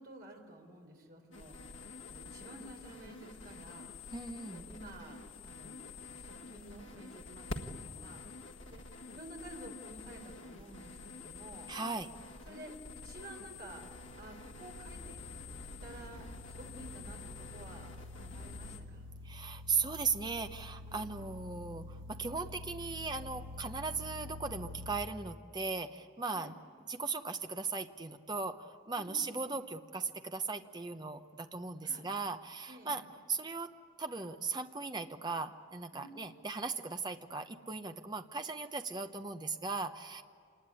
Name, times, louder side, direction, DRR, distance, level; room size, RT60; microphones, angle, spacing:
voice 1, 0.0-1.6 2.1-3.9 4.5-5.8 6.2-8.3 8.7-11.7 12.4-13.8 14.2-15.2 15.8-19.0 20.8-21.2 26.3-26.5 29.0-29.5 31.8-32.1 32.7-33.0 35.9-36.2, right 1 dB, 50° right, 1 dB, 4.1 m, -51 dB
sound 1, 1.3-18.8, left 3 dB, 85° left, 1.8 m, -48 dB
voice 2, 4.1-4.7 11.7-12.1 19.2-26.5 26.9-33.0 33.3-33.7 34.0-40.2, right 4 dB, 20° right, 7 dB, 0.9 m, -38 dB
sound 2, 12.9-25.0, left 2 dB, 80° right, 1.2 m, -49 dB
27.0 x 20.0 x 9.9 m, 2.2 s
head